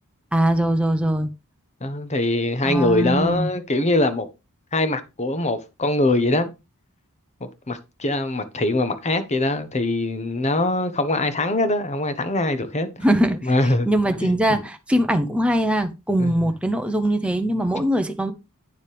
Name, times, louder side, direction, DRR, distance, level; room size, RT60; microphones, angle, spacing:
voice 1, 0.3-1.3 2.6-3.5 13.0-13.5 13.9-18.3, right 1 dB, 5° right, 0.8 m, -21 dB
voice 2, 1.8-4.3 4.7-6.5 7.4-12.9 13.4-13.9 14.2-14.4 16.2-16.4, left 2 dB, 30° left, 1.2 m, -22 dB
9.5 x 7.2 x 3.5 m
head